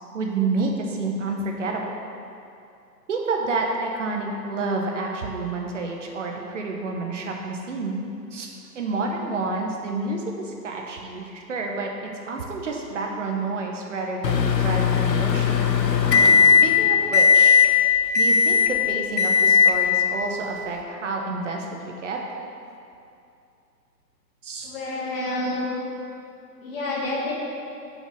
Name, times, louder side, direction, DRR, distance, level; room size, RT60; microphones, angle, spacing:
voice 1, 0.1-2.0 3.1-8.0 8.3-15.7 16.4-17.6 18.2-22.2 24.4-24.7, right 3 dB, 45° right, 1 dB, 1.0 m, -29 dB
Microwave oven, 14.2-16.8 17.1-17.7 18.1-18.7 19.2-19.8, left 6 dB, 80° left, 0.9 m, -17 dB
voice 2, 24.6-25.7 26.6-27.3, left 2 dB, 35° left, -3 dB, 1.7 m, -28 dB
7.0 x 5.3 x 6.3 m, 2.6 s
hypercardioid pair, 145°, 50 cm